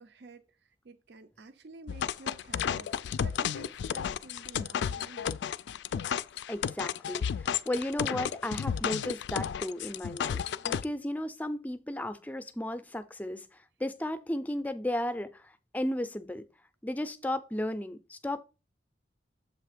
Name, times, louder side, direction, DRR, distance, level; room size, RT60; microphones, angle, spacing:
voice 1, 0.0-2.9 3.2-5.3, right 3 dB, 75° right, 0.5 m, -50 dB
sound 1, 1.9-10.8, left 8 dB, 85° left, 0.3 m, -32 dB
voice 2, 6.5-16.4 16.8-18.4, left 1 dB, 10° left, 0.4 m, -34 dB
7.4 x 3.3 x 4.9 m
head